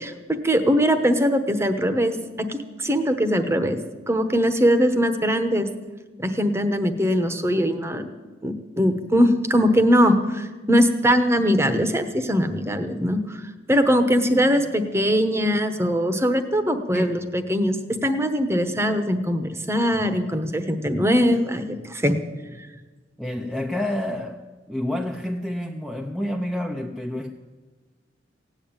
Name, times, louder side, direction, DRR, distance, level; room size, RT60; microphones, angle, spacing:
voice 1, 0.0-3.8 4.1-5.7 6.2-8.1 8.4-13.4 13.7-17.8 18.0-22.2, equal, 15° right, 8 dB, 1.0 m, -21 dB
voice 2, 23.2-24.4 24.7-27.3, left 1 dB, ahead, 1 dB, 0.6 m, -28 dB
16.5 x 8.8 x 8.9 m, 1.3 s
head